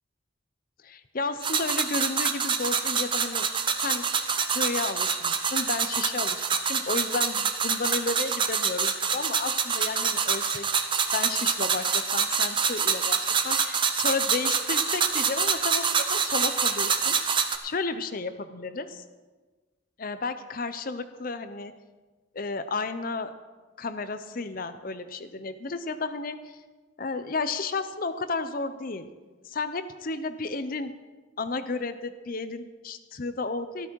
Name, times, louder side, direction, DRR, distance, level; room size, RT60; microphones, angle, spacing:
voice 1, 0.8-3.5 3.8-4.1 4.5-10.7 11.1-17.2 17.6-19.0 20.0-21.7 22.3-23.3 23.8-26.6 27.0-29.1 29.4-30.9 31.4-33.9, left 3 dB, 45° left, 11 dB, 0.6 m, -32 dB
sound 1, 1.4-17.6, right 6 dB, 25° right, 0.7 m, -26 dB
13.0 x 13.0 x 4.6 m, 1.3 s
head